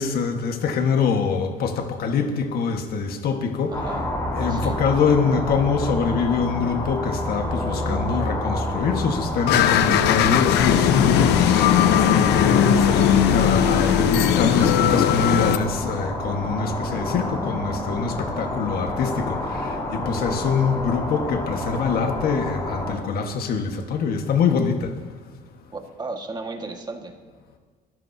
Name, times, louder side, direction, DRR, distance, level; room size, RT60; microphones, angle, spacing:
voice 1, 0.0-3.8 4.3-11.6 11.9-24.9, left 5 dB, 65° left, 5 dB, 1.5 m, -24 dB
sound 1, 3.7-23.0, left 1 dB, 20° left, 4.0 m, -29 dB
voice 2, 3.7-4.0 4.5-4.8 20.1-20.5 25.7-27.1, right 3 dB, 25° right, 4 dB, 1.7 m, -35 dB
sound 2, 9.5-15.6, left 10 dB, 85° left, 0.8 m, -18 dB
22.0 x 14.0 x 2.8 m, 1.5 s
cardioid pair, 110°, 17 cm